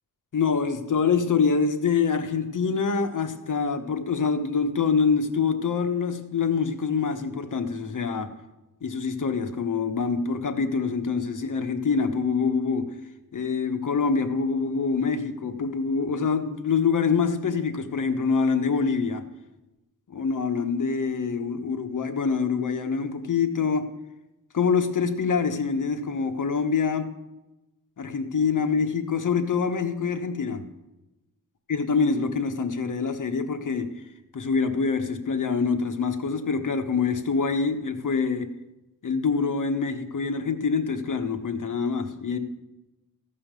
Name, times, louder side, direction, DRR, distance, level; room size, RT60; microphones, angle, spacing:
voice 1, 0.3-8.3 8.8-12.9 13.3-19.2 20.1-23.9 24.5-27.1 28.0-30.6 31.7-33.9 34.3-38.5 39.0-42.4, left 5 dB, 60° left, 6 dB, 1.1 m, -25 dB
14.0 x 5.6 x 6.7 m, 1.0 s
wide cardioid pair, 110°, 36 cm